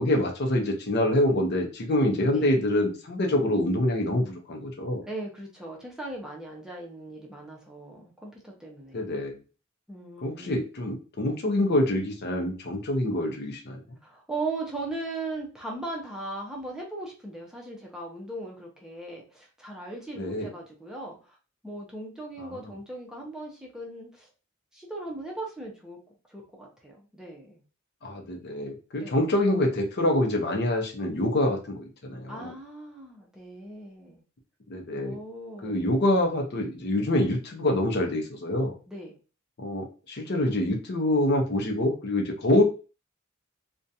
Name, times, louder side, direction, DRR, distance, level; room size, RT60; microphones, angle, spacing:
voice 1, 0.0-5.0 8.9-9.4 10.2-13.8 20.2-20.5 22.4-22.6 28.0-32.5 34.7-35.2 35.6-38.7 39.6-42.6, left 1 dB, 55° left, 2 dB, 0.6 m, -26 dB
voice 2, 5.0-9.1 9.9-10.6 14.0-21.4 21.6-24.3 24.7-26.0 26.3-27.6 29.0-29.2 32.3-34.2 34.9-35.9 38.9-39.2, right 2 dB, 5° right, -2 dB, 0.6 m, -38 dB
2.5 x 2.2 x 2.6 m, 0.34 s
head